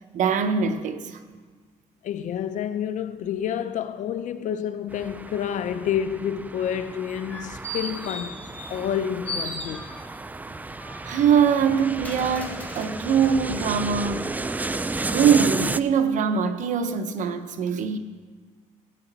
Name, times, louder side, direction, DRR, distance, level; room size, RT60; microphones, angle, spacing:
voice 1, 0.1-1.2 11.0-14.3 15.1-18.0, right 7 dB, 70° right, 0.8 m, -22 dB
voice 2, 2.0-8.4 8.7-9.8, left 9 dB, 70° left, 0.6 m, -29 dB
sound 1, 4.9-15.8, right 3 dB, 10° right, 0.3 m, -33 dB
sound 2, 7.1-9.0 9.2-10.3 10.8-13.4 13.9-14.0, left 1 dB, 10° left, 1.6 m, -37 dB
15.0 x 9.1 x 4.0 m
cardioid pair, 110°, 13 cm